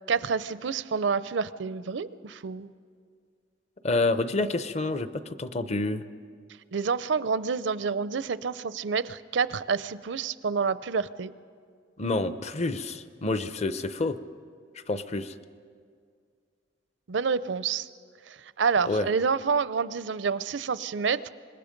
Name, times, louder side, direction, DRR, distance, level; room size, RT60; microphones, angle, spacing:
voice 1, 0.1-2.7 6.7-11.3 17.1-17.9 18.3-21.3, right 5 dB, 75° right, 15 dB, 0.5 m, -28 dB
voice 2, 3.8-6.0 12.0-14.2 14.9-15.3 18.8-19.1, left 2 dB, 35° left, 12 dB, 0.7 m, -28 dB
25.5 x 21.5 x 5.2 m, 2.1 s
head